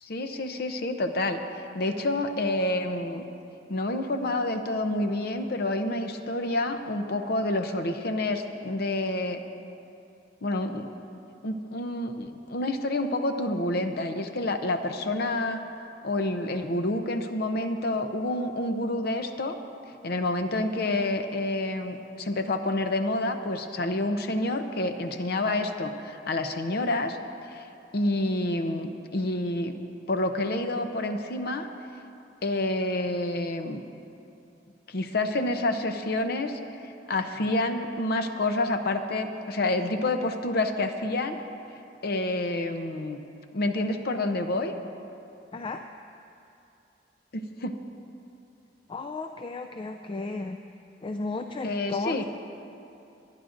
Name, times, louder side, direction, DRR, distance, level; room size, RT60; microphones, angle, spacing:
voice 1, 0.0-1.4 1.7-3.2 3.7-9.4 10.4-10.9 11.4-15.6 16.0-19.6 20.0-27.2 27.5-27.7 27.9-29.8 30.1-31.7 32.4-33.8 34.9-41.4 42.0-43.2 43.5-44.7 47.3-47.8 51.6-52.3, left 2 dB, 60° left, 7 dB, 0.7 m, -28 dB
voice 2, 48.9-50.6 51.0-52.3, left 3 dB, 30° left, 6 dB, 0.4 m, -34 dB
25.5 x 10.5 x 2.6 m, 2.7 s
head